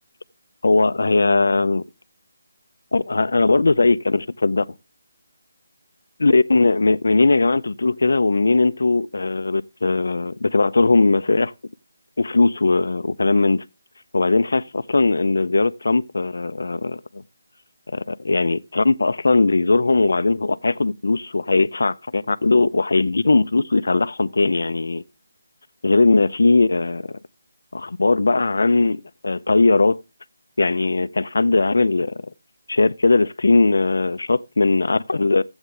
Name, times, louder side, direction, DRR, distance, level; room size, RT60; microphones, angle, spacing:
voice 1, 0.6-1.8 2.9-4.7 6.2-11.5 12.2-13.6 14.1-17.2 17.9-25.0 25.8-27.1 27.7-30.0 30.6-32.2 32.7-35.4, left 3 dB, 70° left, 0.5 m, -19 dB
13.0 x 8.0 x 3.3 m
figure-of-eight pair, 175°, 0 cm